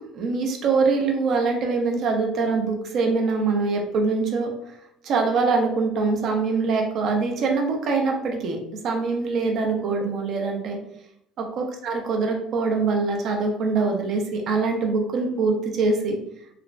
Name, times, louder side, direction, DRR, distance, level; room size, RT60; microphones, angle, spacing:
voice 1, 0.0-4.5 5.0-8.6 8.8-10.8 11.4-16.2, right 4 dB, 45° right, 2 dB, 0.5 m, -23 dB
3.2 x 2.0 x 2.5 m, 0.75 s
cardioid pair, 165°, 0 cm